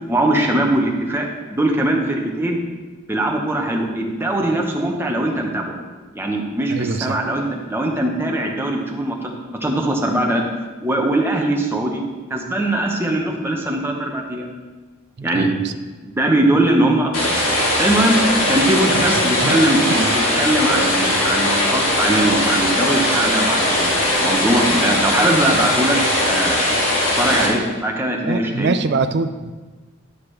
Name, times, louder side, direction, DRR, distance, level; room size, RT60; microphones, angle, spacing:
voice 1, 0.1-2.6 3.1-5.8 6.1-9.3 9.6-10.4 10.8-12.0 12.3-14.5 15.2-15.5 16.0-17.3 17.8-18.2 18.5-26.0 26.2-26.7 27.2-28.8, right 1 dB, 10° right, 0 dB, 1.0 m, -21 dB
voice 2, 6.7-7.2 15.2-15.5 18.9-19.6 19.9-20.1 28.3-29.5, right 4 dB, 55° right, 10 dB, 0.4 m, -24 dB
sound 1, 17.1-27.5, left 1 dB, 85° left, 2.2 m, -19 dB
11.5 x 5.9 x 3.3 m, 1.3 s
head